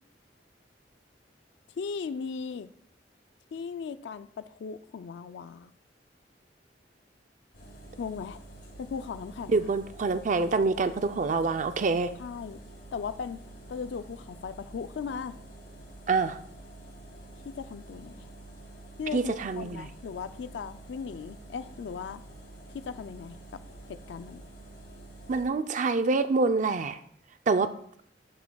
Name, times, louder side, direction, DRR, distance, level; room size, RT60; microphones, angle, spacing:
voice 1, 1.8-2.7 3.5-5.7 8.0-8.4 8.8-9.7 12.2-12.6 12.9-13.4 13.7-15.4 17.5-18.3 19.0-22.2 22.7-23.6 23.9-24.4, left 6 dB, 85° left, 13 dB, 0.4 m, -37 dB
sound 1, 7.5-25.4, right 2 dB, 65° left, 3.3 m, -48 dB
voice 2, 9.5-12.1 16.1-16.4 19.1-19.9 25.3-27.0 27.5-27.7, right 4 dB, 45° right, 10 dB, 0.4 m, -26 dB
12.0 x 9.3 x 2.3 m, 0.65 s
head